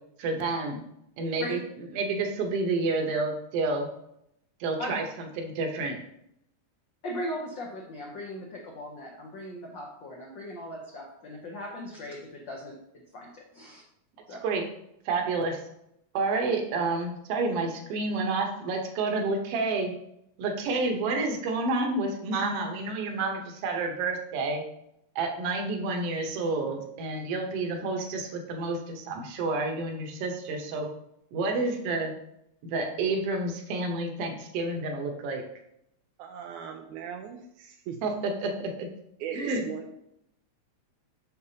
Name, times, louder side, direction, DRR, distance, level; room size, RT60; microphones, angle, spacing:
voice 1, 0.2-0.8 1.2-1.6 1.9-3.9 4.6-6.0 14.4-14.7 15.0-15.6 16.1-19.9 20.4-24.6 25.1-30.9 31.3-32.1 32.6-35.5 38.0-38.9 39.3-39.6, right 3 dB, 65° right, 2 dB, 1.7 m, -29 dB
voice 2, 7.0-12.8 13.1-13.8 14.3-14.4, left 1 dB, 80° left, -1 dB, 1.0 m, -38 dB
voice 3, 36.2-38.0 39.2-40.0, right 7 dB, 90° right, 2 dB, 2.0 m, -39 dB
6.7 x 6.5 x 2.8 m, 0.77 s
omnidirectional pair, 3.4 m